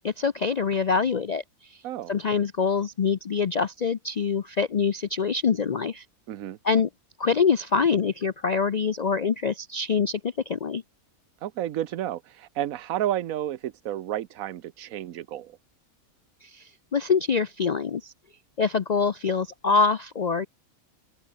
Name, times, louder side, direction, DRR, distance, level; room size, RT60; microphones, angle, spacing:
voice 1, 0.0-1.4 1.7-1.8 2.1-6.0 6.6-6.9 7.2-10.8 16.4-18.1 18.6-20.5, left 5 dB, 70° left, 0.4 m, -25 dB
voice 2, 11.4-15.5, right 12 dB, 75° right, 1.2 m, -31 dB
omnidirectional pair, 1.5 m